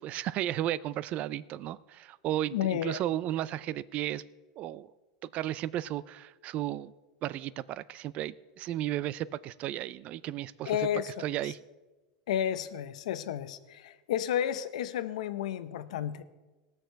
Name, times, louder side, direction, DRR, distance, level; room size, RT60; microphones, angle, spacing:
voice 1, 0.0-4.2 4.6-4.9 5.3-6.9 7.2-10.9 11.2-11.6, right 13 dB, 40° right, 19 dB, 0.4 m, -34 dB
voice 2, 2.5-3.0 10.7-11.2 12.3-16.2, left 10 dB, 85° left, 13 dB, 0.7 m, -32 dB
18.5 x 6.5 x 4.6 m, 1.2 s
supercardioid pair, 135°, 4 cm